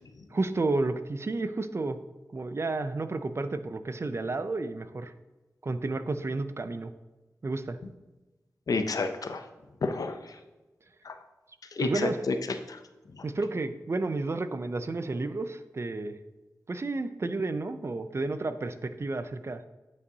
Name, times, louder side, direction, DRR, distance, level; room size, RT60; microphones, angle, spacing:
voice 1, 0.3-2.0 2.3-5.1 5.6-6.9 7.4-7.8 11.8-12.2 13.2-16.2 16.7-19.6, right 3 dB, 45° right, 11 dB, 0.5 m, -31 dB
voice 2, 8.7-9.4 9.8-10.2 11.0-11.2 11.7-12.3 12.7-12.8 13.1-13.2, left 3 dB, 70° left, 8 dB, 0.6 m, -29 dB
9.4 x 5.3 x 2.8 m, 1.1 s
cardioid pair, 55°, 6 cm